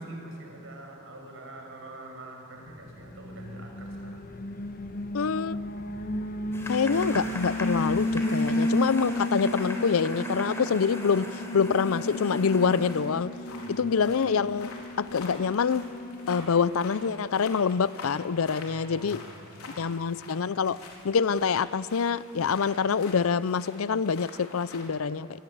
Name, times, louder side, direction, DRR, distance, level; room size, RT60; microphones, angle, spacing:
voice 1, 0.0-4.2 13.5-13.9 18.7-20.0, right 1 dB, 60° right, 1 dB, 5.8 m, -44 dB
Alarm, 3.0-16.4, left 1 dB, 40° left, 1.2 m, -33 dB
voice 2, 5.1-5.6 6.7-11.3 11.5-13.3 13.7-14.7 15.0-15.9 16.3-19.2 19.8-20.8 21.0-25.4, left 6 dB, 70° left, 19 dB, 0.5 m, -26 dB
sound 1, 6.5-12.9, equal, 10° left, 3.9 m, -40 dB
sound 2, 11.8-24.9, left 3 dB, 85° left, 4.1 m, -47 dB
25.0 x 21.0 x 8.7 m, 2.8 s
head